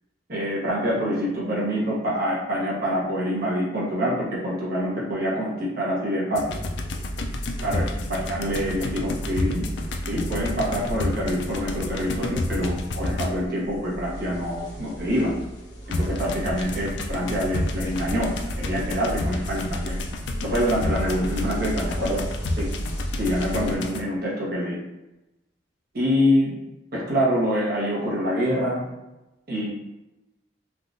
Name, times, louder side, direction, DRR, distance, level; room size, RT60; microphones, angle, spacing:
voice 1, 0.3-6.5 7.6-7.8 8.1-9.6 10.1-15.3 15.9-18.3 18.6-20.0 20.4-22.2 22.6-22.7 23.2-24.8 25.9-26.5 26.9-28.9 29.5-29.7, equal, 55° right, -5 dB, 0.9 m, -25 dB
sound 1, 6.3-13.6 15.9-24.0, left 2 dB, 70° left, 0.3 m, -31 dB
sound 2, 6.5-23.8, equal, 85° left, 1.2 m, -34 dB
3.4 x 2.3 x 2.5 m, 0.98 s
head